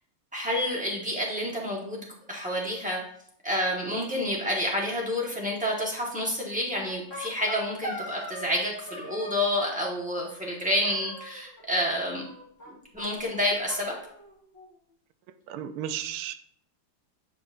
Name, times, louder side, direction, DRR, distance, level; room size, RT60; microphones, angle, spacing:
voice 1, 0.3-3.0 3.4-12.2 12.7-14.0, left 1 dB, 5° right, -2 dB, 0.8 m, -29 dB
sound 1, 6.7-8.6 8.9-9.9 10.8-11.6 11.9-12.7 13.0-13.1 13.3-13.4 13.7-14.7, equal, 10° left, 1.5 m, -40 dB
voice 2, 15.5-16.3, right 10 dB, 80° right, 11 dB, 1.4 m, -33 dB
8.8 x 4.9 x 2.5 m, 0.65 s
omnidirectional pair, 2.4 m